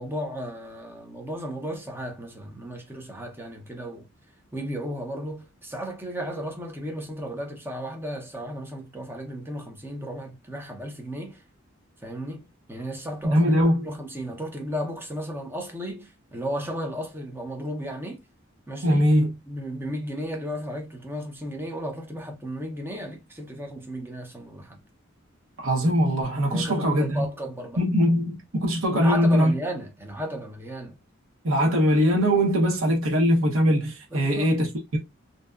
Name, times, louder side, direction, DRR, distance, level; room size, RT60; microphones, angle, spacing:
voice 1, 0.0-4.1 4.5-11.4 12.0-13.5 13.8-18.2 18.7-19.0 19.5-24.8 26.5-27.8 28.9-31.0 34.1-34.5, equal, 10° right, 0.6 m, -34 dB
voice 2, 13.2-13.9 18.8-19.3 25.6-27.3 27.8-29.5 31.4-35.0, equal, 85° right, 0.9 m, -21 dB
2.7 x 2.2 x 2.3 m
head